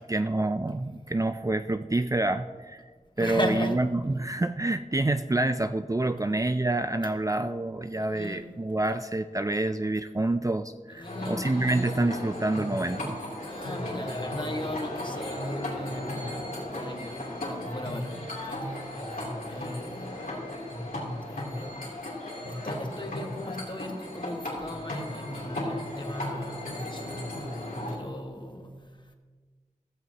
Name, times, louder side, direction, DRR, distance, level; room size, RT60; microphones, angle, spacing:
voice 1, 0.0-2.8 3.2-13.2, right 2 dB, 25° right, 9 dB, 0.4 m, -27 dB
voice 2, 3.2-3.8 6.1-6.4 8.0-8.5 10.9-11.6 13.4-18.1 18.4-19.0 19.5-20.6 20.8-20.9 21.2-21.8 22.4-27.3 27.9-28.9, left 1 dB, 35° left, 3 dB, 1.5 m, -37 dB
sound 1, 11.0-28.0, left 1 dB, 90° left, 3.1 m, -35 dB
15.0 x 14.0 x 2.9 m, 1.5 s
wide cardioid pair, 55°, 14 cm